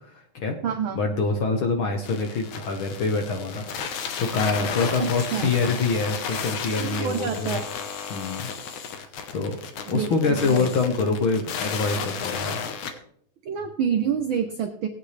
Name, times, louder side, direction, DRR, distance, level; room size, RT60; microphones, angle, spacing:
voice 1, 0.0-0.6 0.9-3.7 3.9-7.6 8.1-8.5 8.9-9.6 9.9-12.6, left 4 dB, 60° left, 4 dB, 1.5 m, -25 dB
voice 2, 0.6-1.0 5.0-5.5 6.7-7.7 9.9-10.7 13.4-14.9, right 7 dB, 75° right, 5 dB, 1.2 m, -27 dB
sound 1, 2.0-12.9, left 6 dB, 80° left, 2.5 m, -33 dB
20.0 x 8.6 x 3.3 m, 0.69 s
omnidirectional pair, 3.3 m